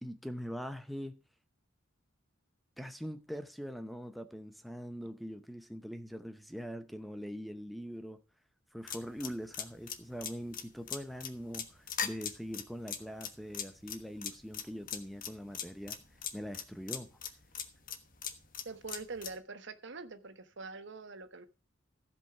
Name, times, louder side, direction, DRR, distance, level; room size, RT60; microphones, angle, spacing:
voice 1, 0.0-1.2 2.8-8.2 8.7-16.0 16.3-17.2, equal, ahead, 0.6 m, -42 dB
sound 1, 8.9-19.4, left 8 dB, 45° left, 1.3 m, -39 dB
voice 2, 18.6-21.5, right 4 dB, 60° right, 1.0 m, -44 dB
15.0 x 5.4 x 5.8 m
head